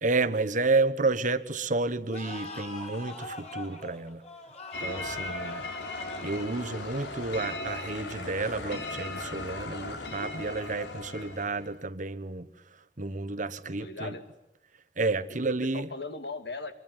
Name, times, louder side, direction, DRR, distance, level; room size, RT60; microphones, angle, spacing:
voice 1, 0.0-4.2 4.8-5.6 6.2-12.5 13.0-14.2 15.0-15.9, right 3 dB, 45° right, 1.3 m, -30 dB
sound 1, 2.1-8.6, left 2 dB, 40° left, 5.6 m, -43 dB
sound 2, 4.7-11.8, left 2 dB, 80° left, 4.1 m, -38 dB
voice 2, 13.8-14.2 15.3-16.7, left 3 dB, 65° left, 2.6 m, -39 dB
25.5 x 23.5 x 9.6 m
head